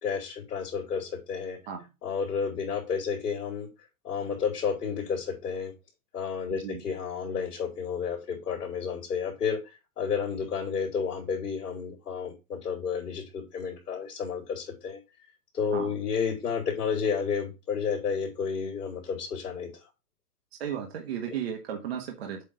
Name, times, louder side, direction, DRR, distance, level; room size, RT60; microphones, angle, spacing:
voice 1, 0.0-1.6 2.0-3.7 4.0-5.7 6.1-9.6 10.0-15.0 15.5-19.7, left 6 dB, 75° left, -2 dB, 3.6 m, -31 dB
voice 2, 6.5-6.8 15.7-15.9 20.6-22.4, right 8 dB, 40° right, 2 dB, 1.4 m, -35 dB
7.9 x 3.7 x 4.7 m, 0.26 s
hypercardioid pair, 180°, 46 cm